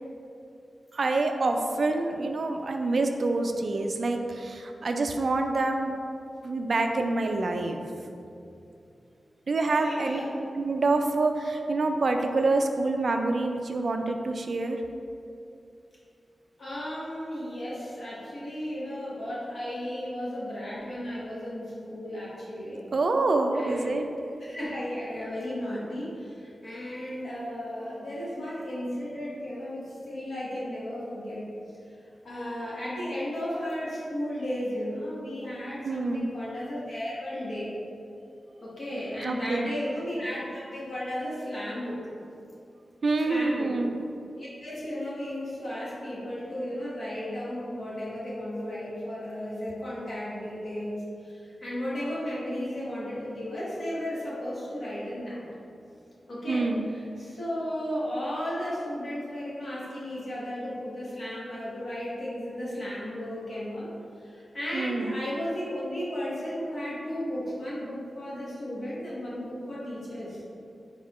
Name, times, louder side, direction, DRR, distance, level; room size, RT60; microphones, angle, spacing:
voice 1, 0.9-6.0 6.4-7.8 9.5-10.2 10.6-14.8 22.9-24.1 35.9-36.3 39.2-39.7 43.0-43.9 56.5-56.9 64.7-65.1, right 3 dB, 50° right, 5 dB, 0.3 m, -26 dB
voice 2, 9.8-10.3 16.6-22.8 23.5-23.9 24.4-31.5 32.2-37.7 38.6-42.0 43.2-43.7 44.4-55.4 56.3-63.9 64.2-70.4, equal, 50° left, -8 dB, 1.3 m, -34 dB
4.3 x 4.0 x 3.1 m, 2.6 s
wide cardioid pair, 140°, 0 cm